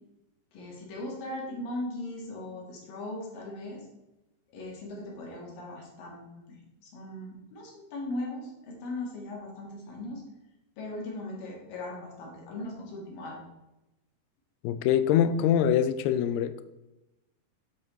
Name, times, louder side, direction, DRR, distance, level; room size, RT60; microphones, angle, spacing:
voice 1, 0.5-3.8 4.5-6.5 6.8-10.2 10.8-13.4, left 1 dB, 60° left, -2 dB, 3.2 m, -38 dB
voice 2, 14.6-16.6, left 9 dB, 85° left, 11 dB, 2.4 m, -24 dB
7.6 x 7.5 x 3.1 m, 0.98 s
omnidirectional pair, 4.7 m